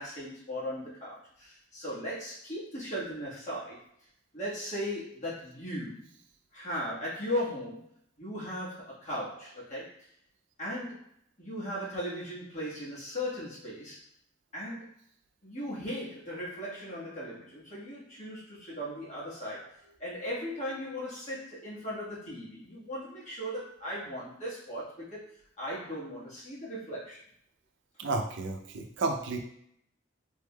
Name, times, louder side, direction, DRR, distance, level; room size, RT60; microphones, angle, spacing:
voice 1, 0.0-3.8 4.3-6.1 6.5-7.9 8.2-9.9 10.6-11.0 11.4-14.0 14.5-14.9 15.4-25.3 25.6-27.2, equal, 35° left, -7 dB, 1.4 m, -37 dB
voice 2, 28.0-29.4, right 3 dB, 70° right, 4 dB, 0.5 m, -32 dB
3.5 x 3.4 x 2.2 m, 0.67 s
head